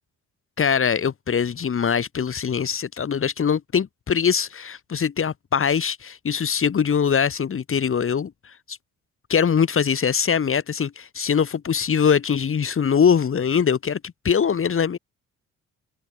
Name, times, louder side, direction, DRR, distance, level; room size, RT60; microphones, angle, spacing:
voice 1, 0.6-8.8 9.3-14.0 14.2-15.0, left 7 dB, 45° left, 2.8 m, -22 dB
open air
cardioid pair, 90°, 30 cm